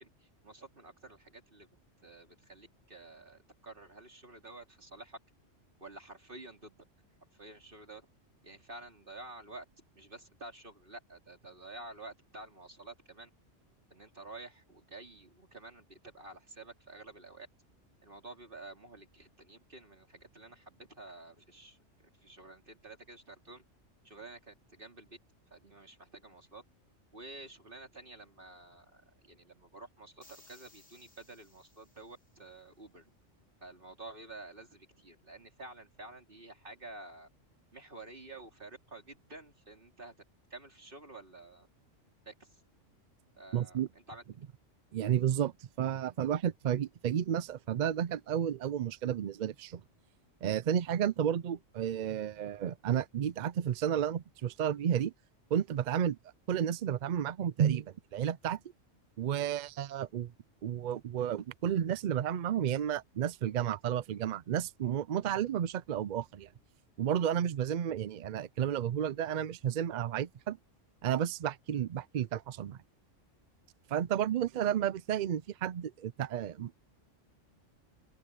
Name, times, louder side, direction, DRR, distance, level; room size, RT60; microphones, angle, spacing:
voice 1, 0.0-1.7 2.0-5.2 5.8-6.8 7.3-8.1 8.4-9.7 9.9-13.3 13.9-17.5 18.0-23.6 24.0-25.2 25.5-26.6 27.1-33.1 33.6-37.3 37.7-40.1 40.5-41.7 42.2-42.6 43.4-44.2, right 2 dB, 45° right, 4.2 m, -50 dB
sound 1, 30.2-32.5, left 2 dB, 80° left, 6.9 m, -61 dB
voice 2, 43.5-43.9 44.9-45.5 45.8-49.8 50.4-55.1 55.5-56.2 56.5-58.6 59.2-60.3 60.6-66.5 67.0-70.6 71.0-72.8 73.9-76.8, right 9 dB, 65° right, 0.4 m, -32 dB
open air
omnidirectional pair, 1.3 m